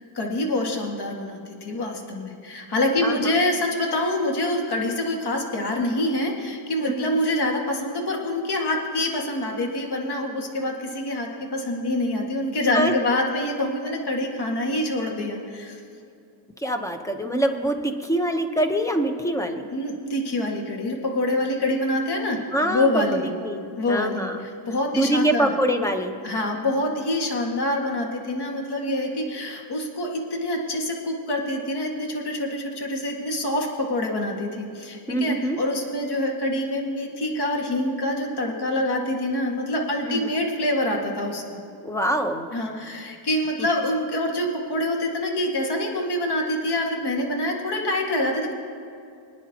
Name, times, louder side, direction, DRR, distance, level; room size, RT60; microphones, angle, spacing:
voice 1, 0.1-15.8 19.7-23.3 23.8-24.3 24.7-25.5 26.2-41.6 42.5-48.5, left 1 dB, 55° left, 0 dB, 1.9 m, -26 dB
voice 2, 3.0-3.3 6.8-7.2 12.7-12.9 16.6-19.7 22.5-24.4 24.9-26.2 35.1-35.6 40.0-40.3 41.8-42.5 43.6-43.7, right 1 dB, 5° left, 5 dB, 0.9 m, -25 dB
24.5 x 9.8 x 2.9 m, 2.5 s
wide cardioid pair, 130°, 48 cm